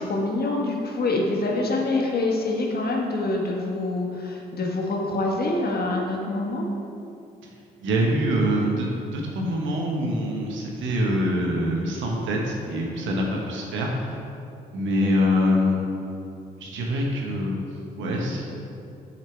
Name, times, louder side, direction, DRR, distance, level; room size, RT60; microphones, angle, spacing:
voice 1, 0.0-6.7, left 2 dB, 50° left, 0 dB, 1.5 m, -25 dB
voice 2, 7.8-8.9 9.1-14.2 14.7-15.8 16.6-17.6 18.0-18.4, equal, 75° right, -1 dB, 1.4 m, -24 dB
7.7 x 5.8 x 4.6 m, 2.6 s
hypercardioid pair, 50°, 20 cm